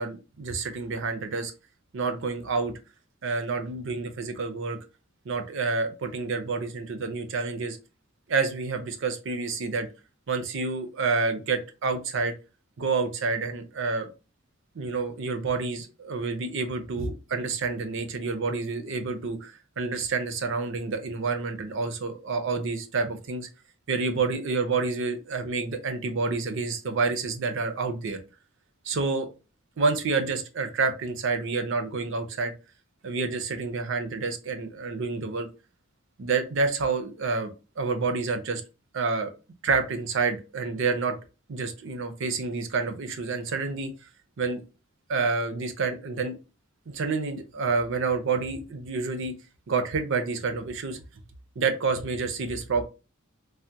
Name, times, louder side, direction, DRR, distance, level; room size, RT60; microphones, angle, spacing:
voice 1, 0.0-1.5 1.9-2.7 3.2-4.8 5.3-7.8 8.3-9.9 10.3-12.3 12.8-14.1 14.7-23.5 23.9-28.2 28.8-29.3 29.8-32.5 33.0-35.5 36.2-37.5 37.8-38.6 38.9-39.3 39.6-41.2 41.5-43.9 44.4-44.6 45.1-46.4 46.9-49.3 49.7-51.0 51.6-52.8, right 4 dB, 60° right, 7 dB, 0.5 m, -28 dB
3.3 x 2.1 x 2.7 m, 0.31 s
head